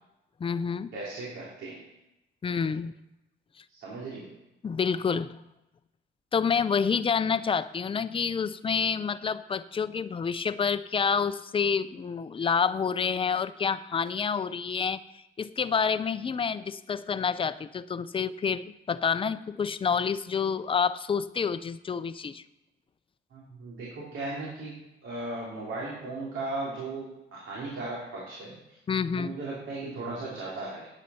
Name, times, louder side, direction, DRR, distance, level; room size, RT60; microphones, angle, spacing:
voice 1, 0.4-0.9 2.4-2.9 4.6-5.4 6.3-22.4 28.9-29.3, left 6 dB, 25° left, 13 dB, 0.5 m, -28 dB
voice 2, 0.9-1.8 3.7-4.3 23.3-24.8 25.0-28.6 29.1-30.9, right 2 dB, 75° right, -5 dB, 3.1 m, -37 dB
9.3 x 8.2 x 5.6 m, 0.91 s
cardioid pair, 90°, 20 cm